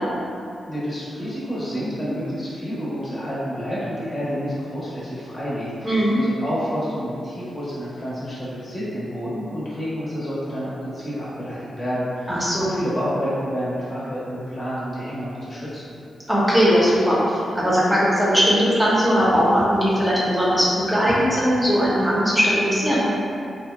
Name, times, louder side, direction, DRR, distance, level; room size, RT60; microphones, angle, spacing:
voice 1, 0.7-15.9, equal, 45° left, -9 dB, 1.0 m, -29 dB
voice 2, 5.8-6.2 12.3-12.7 16.3-23.1, equal, 15° right, -8 dB, 0.7 m, -19 dB
2.8 x 2.1 x 2.3 m, 2.5 s
supercardioid pair, 45°, 0 cm